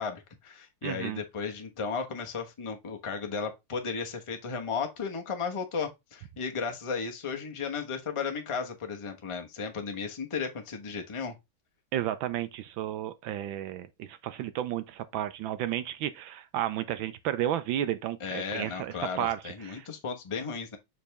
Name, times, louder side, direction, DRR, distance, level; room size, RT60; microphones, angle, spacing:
voice 1, 0.0-11.4 18.2-20.8, left 5 dB, 30° left, 0.6 m, -35 dB
voice 2, 0.8-1.2 11.9-19.9, right 11 dB, 75° right, 1.3 m, -32 dB
6.7 x 4.2 x 3.3 m
omnidirectional pair, 2.4 m